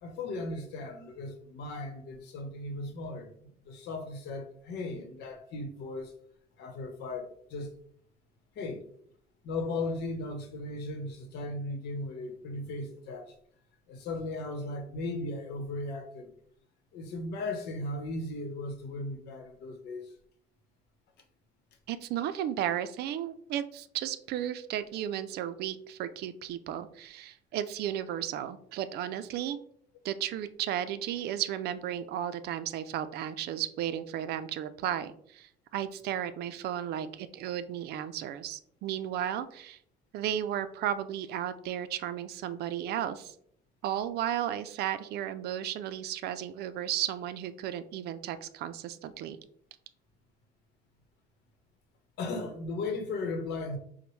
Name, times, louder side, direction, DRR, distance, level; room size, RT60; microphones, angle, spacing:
voice 1, 0.0-6.1 6.6-7.7 8.5-8.9 9.4-13.3 13.9-16.3 16.9-20.1 52.2-53.8, left 2 dB, 75° left, 0.9 m, -37 dB
voice 2, 21.9-29.6 30.0-39.8 40.1-43.3 43.8-49.4, right 10 dB, 75° right, 0.4 m, -34 dB
6.0 x 2.2 x 3.1 m
cardioid pair, 110°, 17 cm